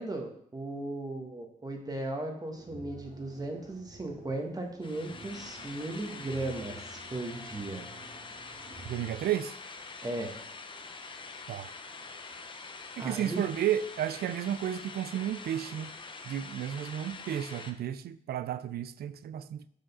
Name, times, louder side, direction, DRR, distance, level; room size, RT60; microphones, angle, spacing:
voice 1, 0.0-7.8 10.0-10.4 13.0-13.4, right 2 dB, 25° right, 3 dB, 1.4 m, -36 dB
sound 1, 2.5-9.2, right 2 dB, 45° right, 1.8 m, -51 dB
sound 2, 4.8-17.7, left 4 dB, 30° left, 0.7 m, -45 dB
voice 2, 8.8-9.5 11.5-11.7 13.0-15.9 16.2-19.7, right 10 dB, 75° right, 15 dB, 0.4 m, -32 dB
6.2 x 5.0 x 5.4 m, 0.69 s
cardioid pair, 120°, 16 cm